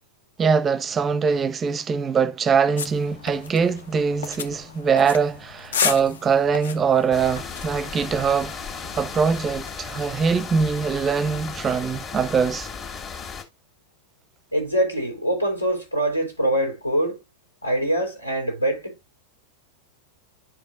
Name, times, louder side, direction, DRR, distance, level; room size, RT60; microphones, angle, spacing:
voice 1, 0.4-8.6 9.0-12.7, right 6 dB, 20° right, 0.6 m, -22 dB
sound 1, 2.8-9.7, left 7 dB, 65° left, 0.8 m, -33 dB
sound 2, 7.1-13.4, left 5 dB, 30° left, 2.0 m, -35 dB
voice 2, 14.5-17.2 17.6-19.0, right 1 dB, 85° left, 3.6 m, -24 dB
11.0 x 5.1 x 2.5 m
figure-of-eight pair, 90°, 0 cm